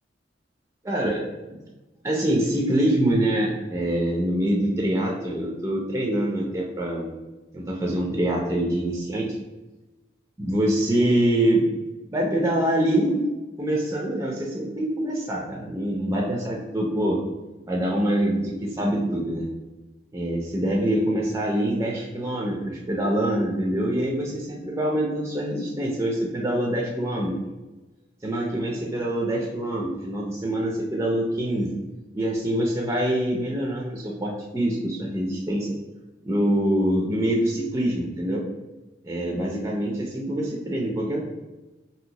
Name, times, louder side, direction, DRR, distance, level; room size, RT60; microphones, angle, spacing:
voice 1, 0.8-1.6 2.0-7.1 7.5-9.3 10.4-11.6 12.1-13.2 13.6-17.2 17.7-19.5 20.1-27.4 28.2-31.7 32.1-35.7 36.2-38.4 39.0-41.2, right 1 dB, 15° right, -2 dB, 0.3 m, -25 dB
2.8 x 2.7 x 2.7 m, 1.1 s
head